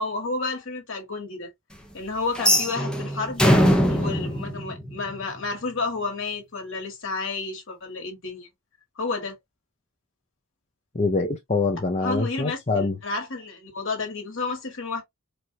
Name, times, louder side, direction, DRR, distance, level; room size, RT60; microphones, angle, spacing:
voice 1, 0.0-1.5 1.9-3.4 3.9-8.5 9.0-9.4 12.0-15.0, left 3 dB, 60° left, 1.9 m, -31 dB
sound 1, 2.3-5.4, equal, 5° left, 0.9 m, -22 dB
voice 2, 10.9-12.9, left 3 dB, 30° left, 0.7 m, -24 dB
4.7 x 2.7 x 2.8 m
head